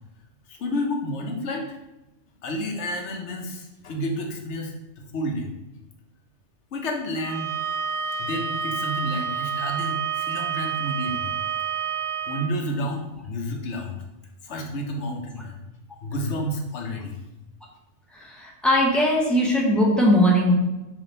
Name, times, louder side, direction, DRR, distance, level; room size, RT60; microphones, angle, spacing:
voice 1, 0.5-1.8 2.4-5.5 6.7-7.5 8.2-11.4 12.3-14.0 14.4-15.6 16.0-17.2, equal, 70° left, 2 dB, 1.0 m, -30 dB
Bowed string instrument, 7.2-12.5, right 7 dB, 70° right, 0.8 m, -29 dB
voice 2, 18.1-20.5, equal, ahead, -4 dB, 0.7 m, -20 dB
3.5 x 3.2 x 3.9 m, 1.0 s
omnidirectional pair, 1.2 m